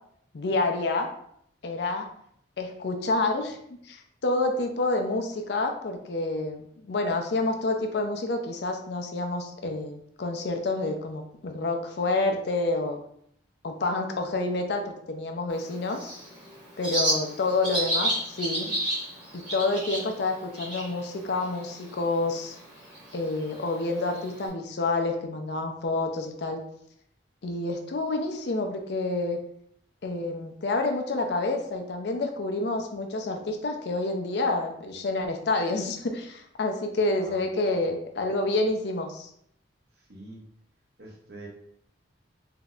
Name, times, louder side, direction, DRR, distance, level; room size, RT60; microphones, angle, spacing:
voice 1, 0.3-1.1 1.6-2.1 2.6-3.6 3.8-13.0 13.6-16.1 16.8-18.8 19.3-22.5 23.1-26.6 27.4-29.4 30.0-39.3, left 2 dB, 60° left, 4 dB, 0.5 m, -28 dB
Bird, 15.5-24.5, right 1 dB, 25° right, 1.1 m, -33 dB
voice 2, 37.2-37.6 40.1-40.4 41.0-41.5, right 2 dB, 60° right, -2 dB, 0.9 m, -44 dB
3.9 x 2.7 x 2.4 m, 0.70 s
head